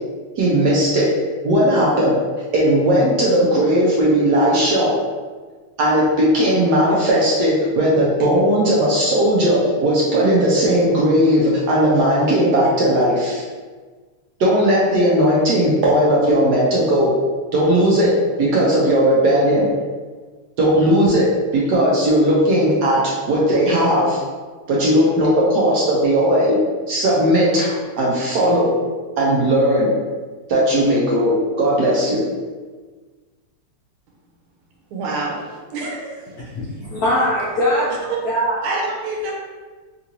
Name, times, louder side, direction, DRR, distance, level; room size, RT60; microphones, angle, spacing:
voice 1, 0.4-1.1 1.4-2.2 2.5-4.9 5.8-13.4 14.4-17.1 17.5-19.7 20.6-23.0 23.3-24.2 24.7-26.6 26.9-28.8 29.2-29.9 30.5-32.2, equal, 70° right, 1.0 m, -17 dB
voice 2, 34.9-36.4 38.1-38.2 38.6-39.3, right 3 dB, 85° right, 1.6 m, -27 dB
voice 3, 36.5-38.6, equal, 75° left, 0.9 m, -21 dB
3.6 x 2.6 x 2.9 m
omnidirectional pair, 2.3 m